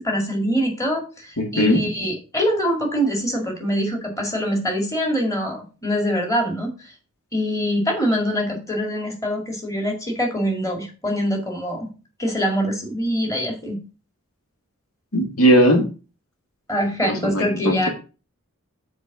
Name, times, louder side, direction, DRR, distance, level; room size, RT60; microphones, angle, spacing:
voice 1, 0.0-6.7 7.3-11.9 12.2-13.8 16.7-17.9, equal, 15° left, 1 dB, 2.0 m, -24 dB
voice 2, 1.4-1.8 15.1-15.9 17.0-17.9, equal, 90° left, 4 dB, 1.8 m, -18 dB
7.1 x 4.6 x 5.8 m, 0.33 s
head